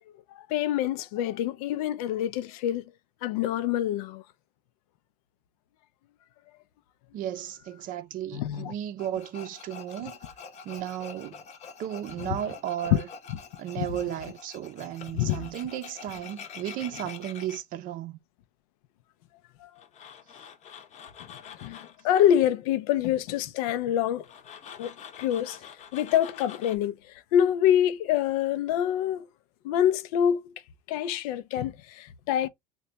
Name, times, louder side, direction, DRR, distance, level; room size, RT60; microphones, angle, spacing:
voice 1, 0.5-2.8 3.2-4.2 8.3-8.7 10.0-10.1 12.3-12.4 13.8-13.9 15.1-15.5 19.6-19.7 21.6-24.2 24.8-25.6 25.9-27.0 27.3-29.3 29.6-30.5 30.9-32.5, left 10 dB, 75° left, 0.5 m, -26 dB
voice 2, 7.1-10.2 10.6-11.4 11.8-13.1 13.6-18.2, right 11 dB, 45° right, 0.5 m, -34 dB
Tools, 9.0-17.6 19.7-22.0 24.2-26.8, left 6 dB, 35° left, 0.8 m, -46 dB
3.3 x 2.2 x 3.9 m
supercardioid pair, 120°, 19 cm